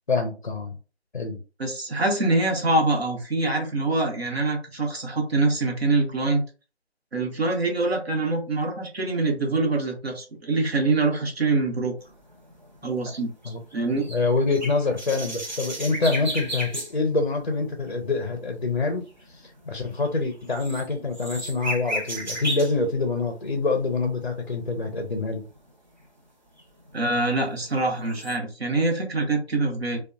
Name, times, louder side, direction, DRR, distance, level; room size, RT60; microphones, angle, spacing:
voice 1, 0.1-0.8 1.1-1.4 13.4-13.6 14.1-25.5, left 3 dB, 50° left, 0.5 m, -26 dB
voice 2, 1.6-6.4 7.1-12.0 12.8-14.1 26.9-30.0, right 2 dB, 65° right, 0.9 m, -24 dB
sound 1, 12.0-16.9 17.3-17.5 17.8-22.8 23.3-24.0 24.5-25.7 26.0-26.1 26.6-27.8 28.1-28.4, right 1 dB, 45° right, 0.9 m, -35 dB
2.7 x 2.2 x 2.4 m
figure-of-eight pair, 170°, 33 cm